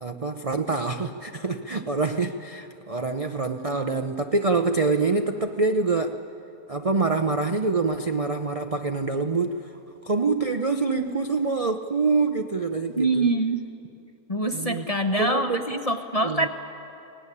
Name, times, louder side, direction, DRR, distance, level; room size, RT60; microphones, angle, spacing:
voice 1, 0.0-6.2 6.7-9.6 10.0-13.3 14.5-14.9 15.2-15.6 16.2-16.5, right 3 dB, 50° right, 6 dB, 0.4 m, -25 dB
voice 2, 13.0-13.6 14.3-16.5, right 2 dB, 30° left, 6 dB, 0.8 m, -24 dB
23.5 x 18.5 x 9.9 m, 2.9 s
omnidirectional pair, 1.8 m